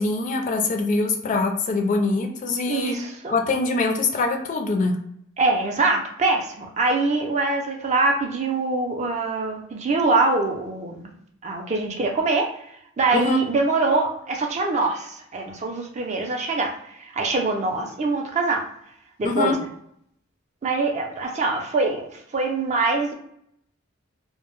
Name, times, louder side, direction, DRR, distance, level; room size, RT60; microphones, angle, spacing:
voice 1, 0.0-2.9 3.3-5.0 13.1-13.4 19.2-19.6, left 3 dB, 40° left, 2 dB, 0.3 m, -23 dB
voice 2, 2.7-3.3 5.4-11.1 11.4-12.7 13.0-18.6 19.2-19.7 20.6-23.1, right 3 dB, 35° right, 1 dB, 0.4 m, -24 dB
2.1 x 2.0 x 2.9 m, 0.71 s
head